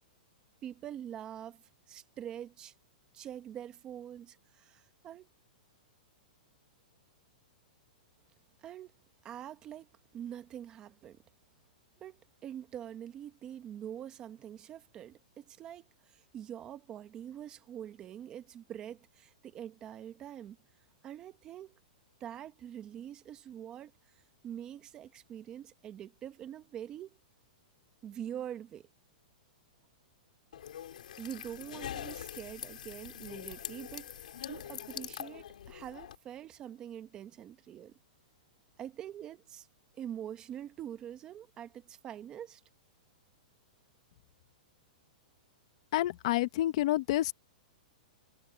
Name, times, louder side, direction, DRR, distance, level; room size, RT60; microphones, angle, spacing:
voice 1, 0.6-2.7 3.1-5.3 8.6-8.9 9.2-11.2 12.0-20.6 21.0-21.8 22.2-23.9 24.4-27.2 28.0-28.9 31.2-34.1 34.5-37.9 38.8-39.7 39.9-42.6, right 10 dB, 20° right, 1.1 m, -45 dB
sound 1, 30.5-36.2, left 10 dB, 75° left, 5.6 m, -43 dB
voice 2, 45.9-47.3, left 15 dB, 45° left, 1.2 m, -28 dB
hypercardioid pair, 170°, 4 cm